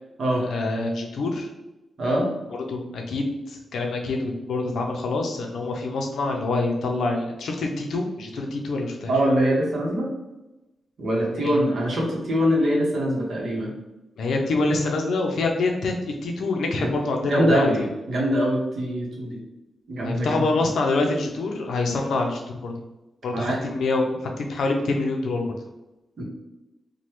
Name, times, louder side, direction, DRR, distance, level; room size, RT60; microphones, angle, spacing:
voice 1, 0.5-1.5 2.5-9.1 11.4-11.6 14.2-17.7 20.0-22.7 23.2-24.1 24.4-25.5, left 2 dB, 80° left, 2 dB, 0.4 m, -26 dB
voice 2, 2.0-2.3 9.1-10.1 11.0-13.7 17.2-19.4 19.9-20.5 23.3-23.6 26.2-26.3, equal, 65° right, -2 dB, 0.8 m, -23 dB
3.0 x 2.1 x 2.9 m, 0.99 s
cardioid pair, 70°, 0 cm